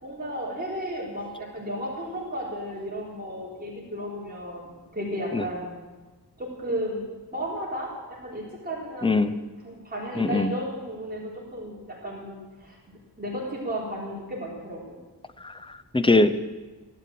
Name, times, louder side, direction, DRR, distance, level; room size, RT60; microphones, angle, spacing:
voice 1, 0.0-5.7 6.4-7.1 7.3-9.4 9.6-15.0, equal, 25° right, -5 dB, 3.8 m, -34 dB
voice 2, 9.0-9.4 10.2-10.5 15.4-16.4, left 2 dB, 15° left, 11 dB, 0.6 m, -22 dB
16.0 x 12.0 x 7.5 m, 1.3 s
wide cardioid pair, 165°, 41 cm